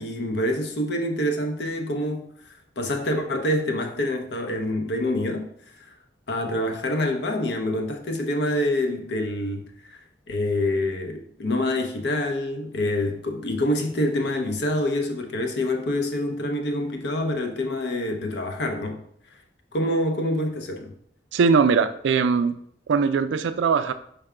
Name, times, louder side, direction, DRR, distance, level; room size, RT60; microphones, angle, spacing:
voice 1, 0.0-2.3 2.8-5.5 6.3-9.6 9.9-10.0 10.3-19.0 19.7-20.9, left 1 dB, 65° left, 0.6 m, -26 dB
voice 2, 21.3-22.6 22.9-23.9, right 5 dB, 90° right, 0.3 m, -20 dB
4.7 x 2.2 x 4.8 m
head